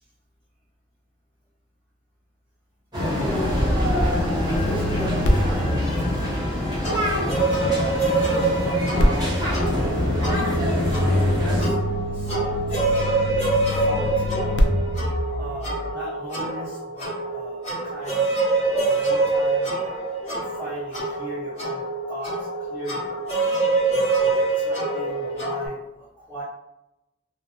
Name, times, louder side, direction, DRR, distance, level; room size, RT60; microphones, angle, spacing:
sound 1, 2.9-11.7, left 1 dB, 25° right, 0.8 m, -24 dB
voice 1, 3.1-3.6 4.4-6.9 7.7-9.2 9.8-10.4 11.0-11.8 12.1-13.2 13.7-14.5 15.4-18.3 18.5-20.0 20.4-23.1 23.9-26.4, equal, 5° left, -10 dB, 0.6 m, -37 dB
sound 2, 4.6-7.8 9.0-15.9, left 1 dB, 75° left, 0.3 m, -26 dB
sound 3, 6.8-25.7, right 3 dB, 35° left, 1.1 m, -25 dB
2.2 x 2.1 x 2.8 m, 0.88 s
head